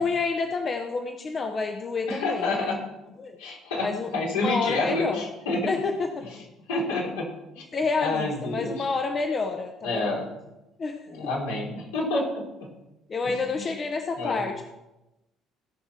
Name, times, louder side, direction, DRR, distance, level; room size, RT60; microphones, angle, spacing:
voice 1, 0.0-2.7 3.2-3.4 3.8-4.1 4.4-5.2 5.6-6.2 7.7-10.1 10.8-11.0 13.1-14.6, left 4 dB, 35° left, 4 dB, 1.0 m, -28 dB
voice 2, 2.1-2.8 3.4-5.7 6.7-7.3 8.0-8.8 9.8-10.3 11.1-12.7 13.2-13.7 14.2-14.4, left 2 dB, 75° left, -3 dB, 3.0 m, -29 dB
17.0 x 6.0 x 4.3 m, 0.96 s
figure-of-eight pair, 55°, 0 cm